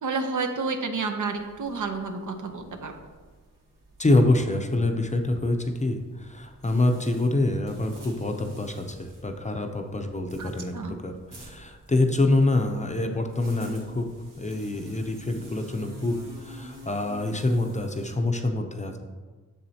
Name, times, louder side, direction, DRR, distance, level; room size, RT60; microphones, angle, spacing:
voice 1, 0.0-2.9 10.4-11.0, right 4 dB, 70° right, 6 dB, 0.7 m, -30 dB
sound 1, 1.3-18.2, equal, 90° right, 1.5 m, -48 dB
voice 2, 4.0-10.7 11.0-14.1 14.4-19.0, left 2 dB, 20° left, 4 dB, 0.5 m, -26 dB
7.3 x 7.1 x 2.8 m, 1.4 s
wide cardioid pair, 125°, 32 cm